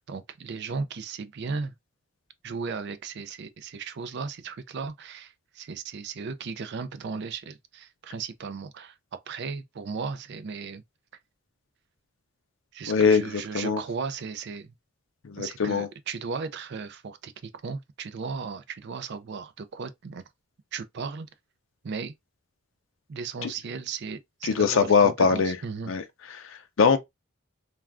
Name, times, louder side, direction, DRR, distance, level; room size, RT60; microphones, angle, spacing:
voice 1, 0.0-1.7 2.4-10.8 12.7-14.7 15.4-17.3 17.6-20.2 20.7-21.3 21.8-22.1 23.1-25.9, right 5 dB, 55° right, 0.4 m, -36 dB
voice 2, 12.9-13.8 15.2-15.9 23.4-23.5 24.4-25.6 25.9-26.0 26.3-27.0, left 5 dB, 65° left, 0.5 m, -22 dB
2.4 x 2.3 x 3.3 m
head